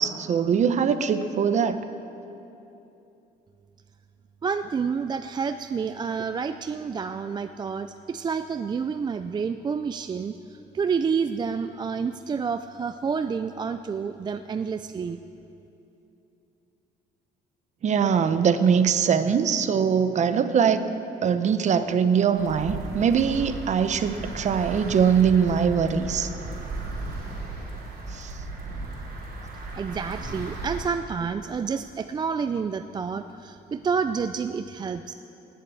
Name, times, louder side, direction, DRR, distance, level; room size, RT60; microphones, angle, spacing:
voice 1, 0.0-1.8 17.8-20.8 21.2-26.3 28.1-28.3, right 7 dB, 45° right, 11 dB, 0.8 m, -22 dB
voice 2, 4.4-10.3 10.7-15.2 29.7-35.1, right 5 dB, 25° right, 10 dB, 0.4 m, -29 dB
bike ride, 22.3-30.9, right 2 dB, 65° right, 3.7 m, -35 dB
18.5 x 7.6 x 8.4 m, 2.9 s
cardioid pair, 110°, 17 cm